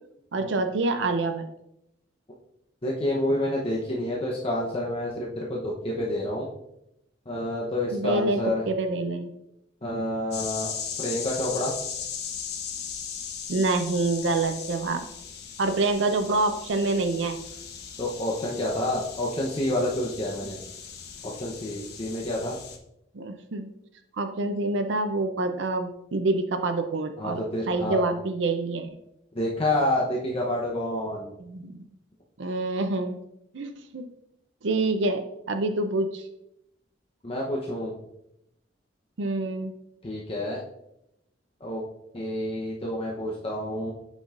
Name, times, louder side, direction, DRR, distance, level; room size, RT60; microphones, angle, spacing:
voice 1, 0.3-1.4 7.9-9.3 13.5-15.0 15.6-17.4 23.1-23.7 24.2-27.4 27.7-28.9 31.4-31.7 32.4-33.2 33.5-34.0 34.6-35.2 35.5-36.2 39.2-39.7, right 2 dB, 85° right, 7 dB, 0.5 m, -26 dB
voice 2, 2.8-6.5 7.3-8.6 9.8-11.7 18.0-20.6 21.2-22.6 27.2-28.0 29.3-31.3 37.2-37.9 40.0-40.6 41.6-41.8 42.1-43.9, left 1 dB, 30° left, -3 dB, 0.8 m, -28 dB
sound 1, 10.3-22.8, left 7 dB, 60° left, 0.9 m, -38 dB
8.1 x 5.3 x 2.5 m, 0.82 s
head